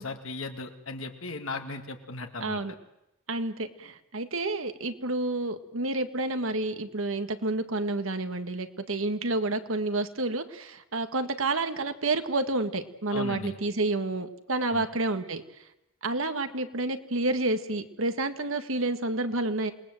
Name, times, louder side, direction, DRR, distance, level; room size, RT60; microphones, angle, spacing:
voice 1, 0.0-2.6 13.1-13.6 14.7-14.9, left 3 dB, 70° left, 4 dB, 2.1 m, -37 dB
voice 2, 2.4-2.7 3.3-15.4 16.0-19.7, right 2 dB, 75° right, 9 dB, 1.8 m, -29 dB
27.5 x 20.5 x 7.8 m, 0.87 s
head